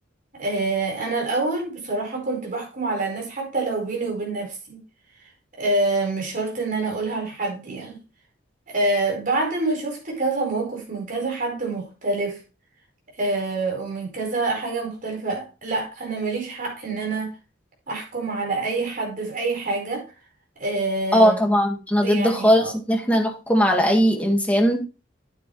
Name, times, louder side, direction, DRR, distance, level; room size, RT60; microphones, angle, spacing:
voice 1, 0.3-4.8 5.6-8.0 8.7-12.4 13.2-17.3 17.9-20.0 20.6-21.4 22.0-22.7, right 2 dB, 45° right, 4.7 m, -26 dB
voice 2, 21.1-24.8, equal, 10° left, 1.8 m, -19 dB
9.1 x 8.8 x 3.2 m
head